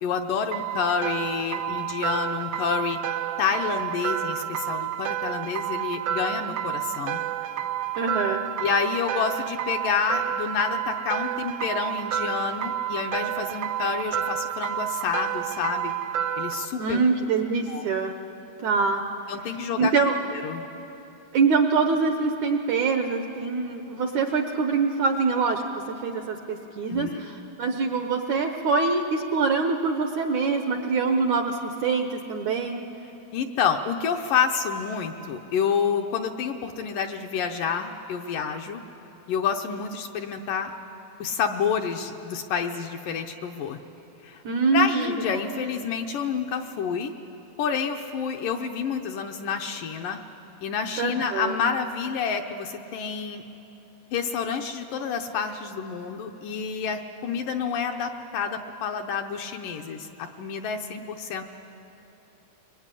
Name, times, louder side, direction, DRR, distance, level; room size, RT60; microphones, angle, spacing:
voice 1, 0.0-3.0 3.4-7.2 8.6-15.9 16.4-17.0 17.7-17.9 19.3-19.9 20.3-20.6 26.9-27.2 33.3-38.8 39.3-40.7 41.2-43.8 44.2-44.4 44.7-47.1 47.6-50.2 50.6-53.4 54.1-61.4, left 6 dB, 70° left, 4 dB, 2.3 m, -28 dB
sound 1, 0.5-16.7, right 10 dB, 90° right, 1.7 m, -30 dB
voice 2, 8.0-8.4 16.8-18.1 18.6-19.1 19.8-20.1 21.3-32.9 44.5-45.4 51.0-51.6, right 4 dB, 70° right, 5 dB, 1.9 m, -24 dB
23.5 x 23.5 x 9.9 m, 3.0 s
omnidirectional pair, 4.5 m